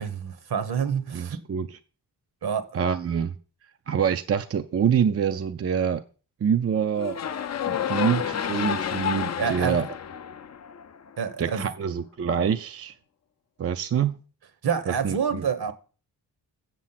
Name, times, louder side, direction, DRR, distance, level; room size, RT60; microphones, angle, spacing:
voice 1, 0.0-1.4 2.4-2.7 9.4-9.9 11.2-11.7 14.6-15.7, right 7 dB, 65° right, 1.2 m, -27 dB
voice 2, 1.1-1.7 2.7-3.4 3.9-6.0 6.4-7.2 7.7-9.9 11.4-12.9 13.6-14.1 14.9-15.4, right 7 dB, 35° right, 0.4 m, -26 dB
sound 1, 7.0-11.2, left 8 dB, 40° left, 0.5 m, -30 dB
7.5 x 7.4 x 5.8 m
wide cardioid pair, 170°, 41 cm